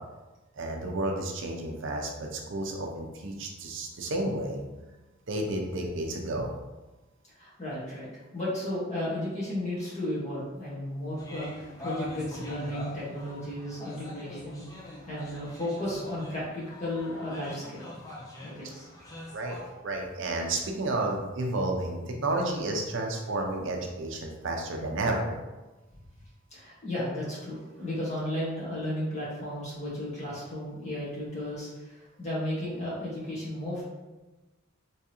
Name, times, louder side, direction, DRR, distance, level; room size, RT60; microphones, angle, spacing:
voice 1, 0.6-4.6 5.3-6.5 19.1-25.4, right 2 dB, 60° right, 1 dB, 0.5 m, -31 dB
voice 2, 7.4-8.1 8.3-14.6 15.1-17.9 18.4-18.9 26.5-33.8, left 1 dB, 35° left, -7 dB, 1.4 m, -34 dB
sound 1, 11.2-19.6, left 2 dB, 15° left, 0.6 m, -43 dB
3.5 x 3.1 x 2.9 m, 1.1 s
head